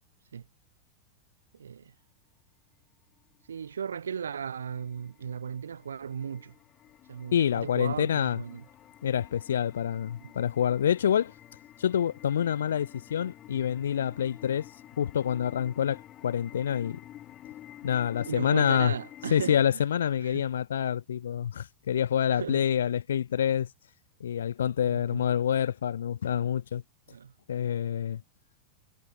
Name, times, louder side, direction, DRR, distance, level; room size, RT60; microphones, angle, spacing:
voice 1, 1.5-1.9 3.5-6.6 7.1-8.6 10.2-10.3 18.3-19.8 20.2-20.4 22.3-22.6 24.8-25.3 27.1-27.3, right 7 dB, 70° right, 1.1 m, -36 dB
sound 1, 3.3-19.6, left 12 dB, 30° left, 0.7 m, -50 dB
voice 2, 7.3-8.4 9.0-11.3 11.8-14.6 15.0-17.0 17.8-18.9 19.3-23.7 24.2-26.8 27.5-28.2, left 9 dB, 65° left, 0.4 m, -27 dB
figure-of-eight pair, 90°, 0 cm